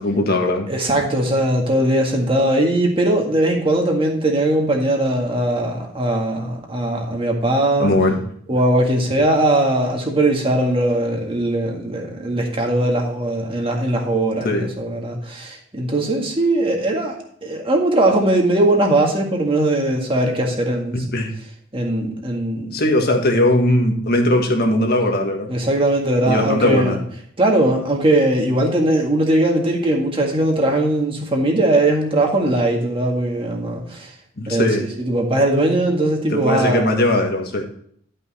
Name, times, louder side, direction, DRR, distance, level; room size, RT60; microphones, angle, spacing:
voice 1, 0.0-0.7 7.8-8.2 14.4-14.7 20.9-21.3 22.7-25.5 26.3-27.0 34.4-34.8 36.3-37.6, left 1 dB, 50° left, 2 dB, 1.6 m, -19 dB
voice 2, 0.7-7.9 8.5-20.9 21.7-22.8 25.5-27.0 27.4-34.1 34.5-36.9, right 1 dB, 25° right, 0 dB, 1.8 m, -19 dB
12.0 x 5.5 x 4.2 m, 0.64 s
head